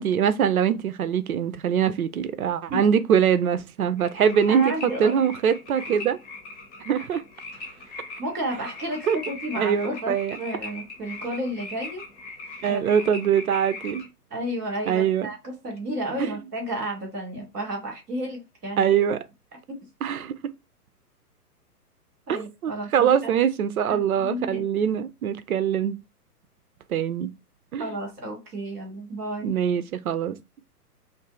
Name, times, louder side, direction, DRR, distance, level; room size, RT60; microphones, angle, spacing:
voice 1, 0.0-6.2 6.9-7.2 9.1-9.2 9.5-10.4 12.6-14.1 14.9-15.3 18.8-19.2 20.0-20.5 22.3-26.0 26.9-27.3 27.7-27.9 29.4-30.4, right 8 dB, 65° right, 0.6 m, -23 dB
sound 1, 4.0-14.1, left 3 dB, 45° left, 1.1 m, -40 dB
voice 2, 4.5-5.1 5.4-5.5 8.2-12.0 12.6-12.8 14.3-18.9 19.7-19.9 22.3-23.3 23.9-24.6 27.8-29.5, right 1 dB, ahead, 0.4 m, -32 dB
2.6 x 2.3 x 3.8 m
figure-of-eight pair, 120°, 47 cm